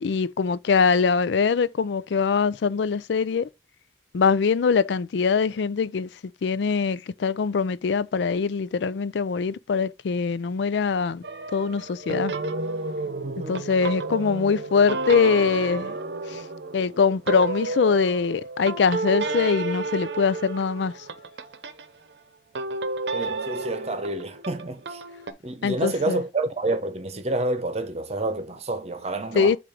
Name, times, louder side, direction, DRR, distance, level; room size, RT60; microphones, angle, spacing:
voice 1, 0.0-3.5 4.1-6.1 6.4-11.2 11.5-12.3 13.5-15.9 16.3-16.4 16.7-21.0 25.6-26.2 29.3-29.6, left 5 dB, 75° left, 0.4 m, -23 dB
sound 1, 11.2-21.9 22.5-25.3, right 3 dB, 75° right, 0.8 m, -31 dB
voice 2, 13.2-13.6 23.1-25.0 25.4-29.6, right 2 dB, 35° right, 0.9 m, -29 dB
7.6 x 2.6 x 4.9 m
head